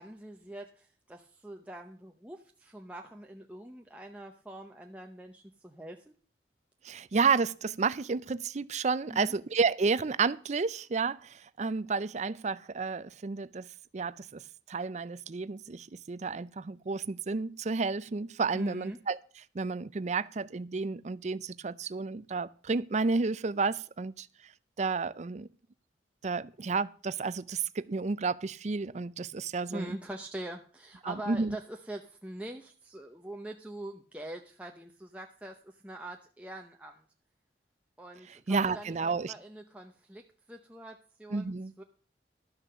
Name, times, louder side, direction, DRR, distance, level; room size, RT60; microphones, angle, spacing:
voice 1, 0.0-6.1 9.1-9.3 18.5-19.0 29.7-37.0 38.0-40.2 40.5-41.8, right 1 dB, 10° right, 0.7 m, -44 dB
voice 2, 6.8-13.7 13.9-14.4 14.7-19.2 19.5-24.3 24.8-25.5 26.2-30.0 31.0-31.6 38.5-39.3 41.3-41.7, right 4 dB, 40° right, 0.5 m, -31 dB
12.0 x 6.1 x 6.7 m
head